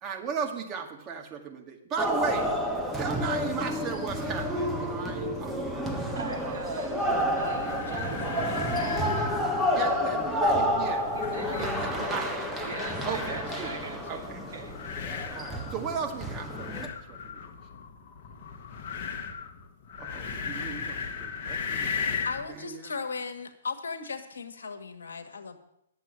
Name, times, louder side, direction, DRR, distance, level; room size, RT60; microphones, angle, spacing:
voice 1, 0.0-2.5 2.9-6.7 7.6-8.0 8.4-8.6 9.6-12.3 12.6-12.7 13.0-13.7 14.1-14.4 15.3-17.4 20.0-21.9 22.5-22.9, right 6 dB, 25° right, 2 dB, 2.0 m, -36 dB
sound 1, 2.0-16.9, equal, 5° right, 1.3 m, -30 dB
voice 2, 6.1-9.4 11.1-14.7 15.2-15.3, right 3 dB, 70° right, 3 dB, 2.6 m, -40 dB
sound 2, 7.0-22.5, left 5 dB, 40° left, 1.3 m, -37 dB
voice 3, 22.2-25.6, left 4 dB, 70° left, 8 dB, 1.5 m, -36 dB
10.5 x 7.5 x 8.5 m, 0.78 s
figure-of-eight pair, 120°, 0 cm